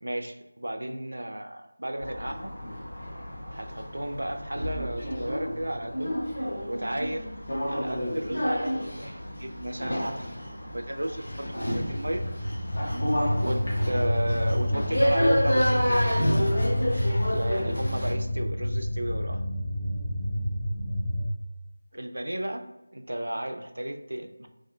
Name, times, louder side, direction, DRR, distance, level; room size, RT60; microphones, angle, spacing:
voice 1, 0.0-2.6 3.5-6.2 6.7-7.3 7.7-10.1 10.7-11.3 11.7-12.2 12.8-12.9 13.4-16.1 17.3-19.4 21.9-24.5, right 1 dB, 80° right, 6 dB, 0.4 m, -33 dB
sound 1, 2.0-18.1, equal, 60° left, 1.2 m, -30 dB
sound 2, 11.3-21.3, left 1 dB, 30° left, 0.3 m, -29 dB
4.3 x 2.4 x 2.2 m, 1.0 s
figure-of-eight pair, 180°, 0 cm